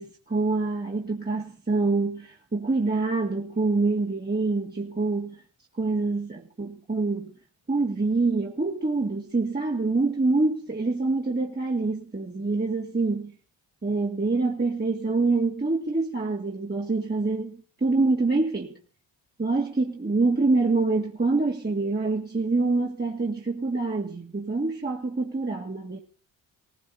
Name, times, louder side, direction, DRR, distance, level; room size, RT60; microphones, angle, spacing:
voice 1, 0.0-5.3 5.8-7.3 7.7-13.3 13.8-18.7 19.4-26.0, right 3 dB, 20° right, 2.3 m, -26 dB
18.0 x 16.5 x 4.2 m
supercardioid pair, 55°, 48 cm